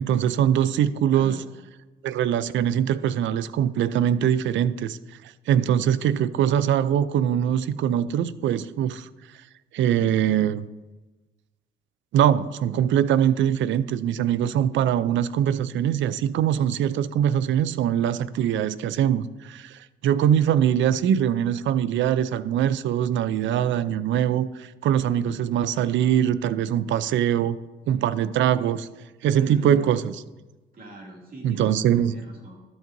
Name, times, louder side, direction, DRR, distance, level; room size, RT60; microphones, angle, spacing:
voice 1, 0.0-1.4 2.0-5.0 5.5-9.1 9.7-10.7 12.1-27.6 27.9-28.9 29.2-30.2 31.4-32.1, right 9 dB, 70° right, 16 dB, 0.4 m, -22 dB
voice 2, 1.1-1.4 29.4-29.9 30.7-32.6, right 1 dB, 45° right, -1 dB, 2.4 m, -40 dB
12.0 x 7.5 x 2.6 m, 1.2 s
cardioid pair, 90°, 20 cm